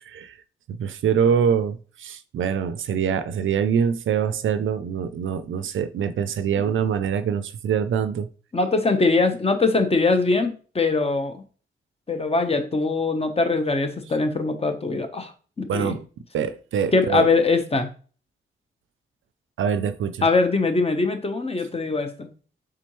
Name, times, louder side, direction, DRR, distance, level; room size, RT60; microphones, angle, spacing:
voice 1, 0.1-0.4 0.8-8.3 15.7-16.0 16.3-17.3 19.6-20.2, right 7 dB, 70° right, 0.4 m, -24 dB
voice 2, 8.5-11.4 12.1-15.3 15.6-16.0 16.9-17.9 20.2-22.3, left 3 dB, 30° left, 0.9 m, -22 dB
4.3 x 3.7 x 3.0 m
cardioid pair, 55°, 21 cm